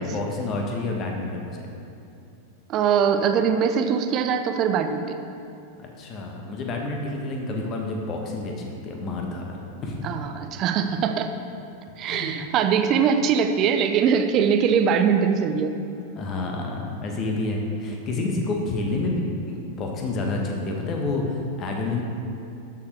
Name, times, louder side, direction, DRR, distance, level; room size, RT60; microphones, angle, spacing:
voice 1, 0.0-1.7 5.8-9.5 9.8-10.0 12.0-12.3 16.2-22.0, left 2 dB, 30° left, 1 dB, 1.4 m, -29 dB
voice 2, 2.7-5.2 10.0-11.3 12.0-15.7 18.9-19.0, right 7 dB, 35° right, 7 dB, 0.6 m, -22 dB
13.0 x 6.6 x 3.5 m, 2.7 s
figure-of-eight pair, 90°, 0 cm